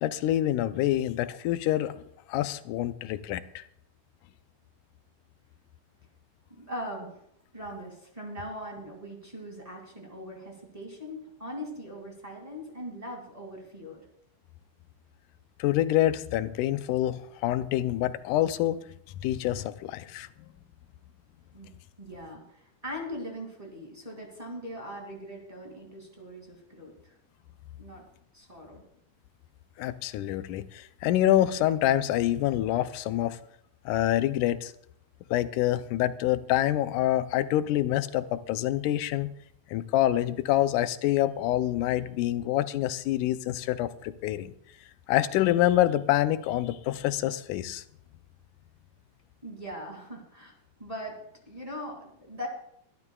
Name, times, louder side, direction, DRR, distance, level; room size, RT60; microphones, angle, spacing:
voice 1, 0.0-2.0 2.3-3.6 15.6-18.8 19.2-20.3 29.8-33.4 33.9-34.7 35.3-39.3 39.7-44.5 45.1-47.8, left 13 dB, 90° left, 12 dB, 2.1 m, -26 dB
voice 2, 6.6-7.2 7.5-14.0 21.5-21.7 22.0-27.2 27.8-28.0 28.3-28.8 49.4-50.5 50.8-51.2 51.5-52.5, equal, 15° right, -1 dB, 2.1 m, -40 dB
23.0 x 12.0 x 2.3 m, 0.72 s
omnidirectional pair, 3.5 m